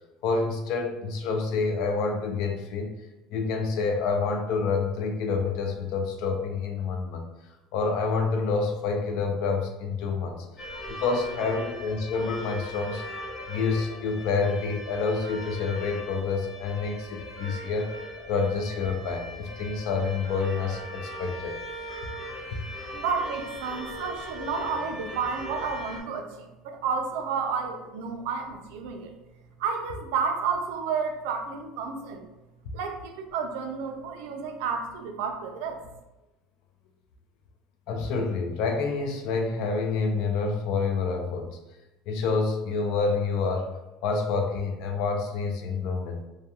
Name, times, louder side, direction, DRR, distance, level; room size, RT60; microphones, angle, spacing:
voice 1, 0.2-2.9 3.3-7.2 7.7-10.5 11.0-13.0 13.5-17.9 18.3-21.5 37.9-41.6 42.1-43.7 44.0-46.2, left 4 dB, 55° left, 4 dB, 0.4 m, -28 dB
sound 1, 10.6-26.0, equal, 20° left, 0.8 m, -39 dB
voice 2, 22.9-29.1 29.6-32.2 32.7-35.8, right 5 dB, 75° right, 4 dB, 0.4 m, -31 dB
2.3 x 2.2 x 2.8 m, 0.98 s
cardioid pair, 175°, 0 cm